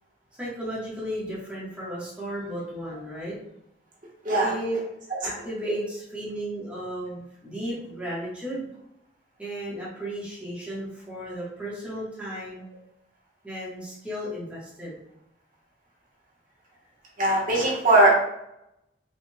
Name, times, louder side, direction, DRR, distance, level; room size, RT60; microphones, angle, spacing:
voice 1, 0.4-3.4 4.4-4.8 5.2-8.7 9.4-12.6 13.4-15.0, right 1 dB, 5° right, -8 dB, 1.4 m, -34 dB
voice 2, 17.2-18.2, right 2 dB, 50° right, -4 dB, 1.3 m, -20 dB
4.4 x 4.1 x 2.3 m, 0.80 s
head